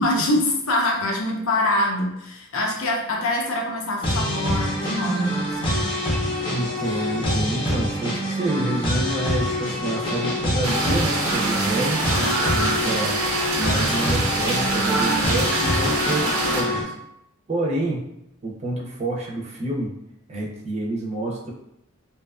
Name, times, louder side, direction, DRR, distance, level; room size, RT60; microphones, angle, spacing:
voice 1, 0.0-5.8, left 1 dB, 85° left, 0 dB, 0.6 m, -24 dB
sound 1, 4.0-16.8, equal, 25° left, 0.6 m, -25 dB
voice 2, 6.5-13.2 13.6-16.9 17.5-18.1 18.4-19.9 20.3-21.5, right 1 dB, 30° right, -3 dB, 0.4 m, -28 dB
sound 2, 10.6-16.6, right 2 dB, 85° right, 0.5 m, -25 dB
2.5 x 2.2 x 2.4 m, 0.82 s
head